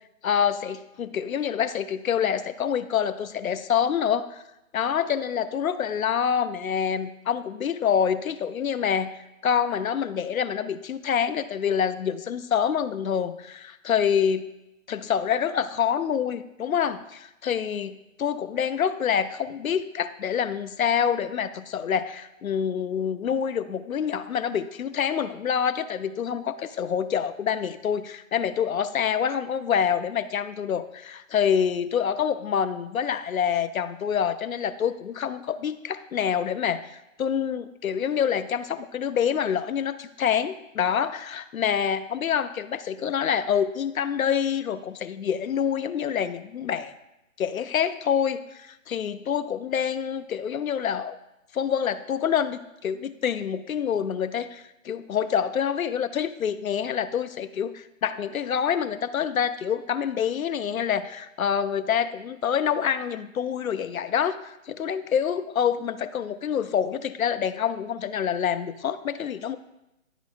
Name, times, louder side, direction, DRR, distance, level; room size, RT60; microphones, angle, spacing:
voice 1, 0.2-4.4 4.7-9.1 9.4-14.5 14.9-46.9 47.4-51.2 51.5-69.6, left 8 dB, 80° left, 11 dB, 0.6 m, -26 dB
11.5 x 4.0 x 2.5 m, 0.91 s
hypercardioid pair, 150°, 41 cm